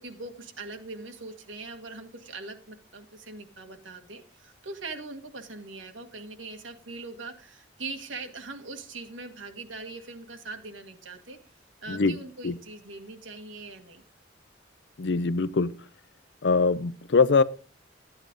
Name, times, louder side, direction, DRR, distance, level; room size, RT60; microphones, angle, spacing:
voice 1, 0.0-11.4 11.8-14.0, right 3 dB, 85° right, 1.7 m, -41 dB
voice 2, 15.0-15.7 16.4-17.4, left 4 dB, 65° left, 0.6 m, -22 dB
12.0 x 8.8 x 3.8 m
head